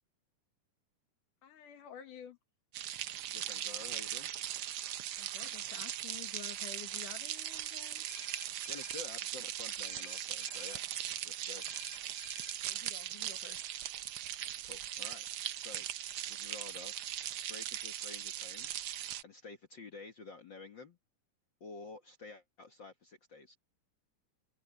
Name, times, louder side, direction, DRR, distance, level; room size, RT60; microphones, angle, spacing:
voice 1, 1.4-2.4 5.2-8.1 12.6-13.7, left 9 dB, 80° left, 3.4 m, -51 dB
sound 1, 2.7-19.2, right 12 dB, 85° right, 1.2 m, -40 dB
voice 2, 3.3-4.3 8.7-11.7 14.6-15.3 15.6-15.9 16.3-16.9 17.5-18.7 19.2-21.0 21.6-23.6, left 4 dB, 45° left, 1.8 m, -50 dB
sound 2, 8.1-9.1 9.8-10.8 11.6-12.6, left 9 dB, 65° left, 2.1 m, -53 dB
open air
omnidirectional pair, 3.6 m